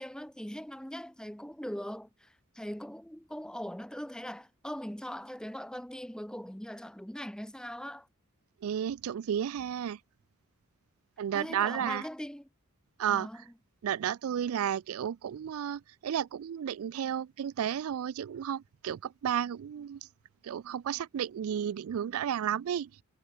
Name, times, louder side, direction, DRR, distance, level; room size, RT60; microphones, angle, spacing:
voice 1, 0.0-8.1 11.3-12.5 13.1-13.5, equal, 5° left, 1.3 m, -41 dB
voice 2, 8.6-10.0 11.2-12.0 13.0-13.3 13.8-20.0 20.4-22.9, right 9 dB, 85° right, 0.4 m, -32 dB
head